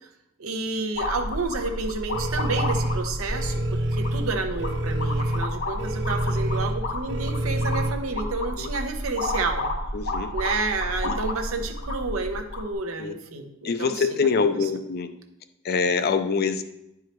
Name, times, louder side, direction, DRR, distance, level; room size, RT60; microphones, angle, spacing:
voice 1, 0.4-3.6 3.9-9.7 10.3-14.7, right 3 dB, 85° right, 5 dB, 0.9 m, -30 dB
sound 1, 1.0-12.7, left 1 dB, 75° left, 1.7 m, -31 dB
sound 2, 2.1-7.9, right 1 dB, 55° right, 0.5 m, -27 dB
voice 2, 9.9-10.3 11.0-11.2 13.0-13.1 13.6-15.1 15.6-16.6, left 5 dB, 50° left, 9 dB, 0.5 m, -24 dB
10.5 x 4.7 x 3.0 m, 0.88 s
head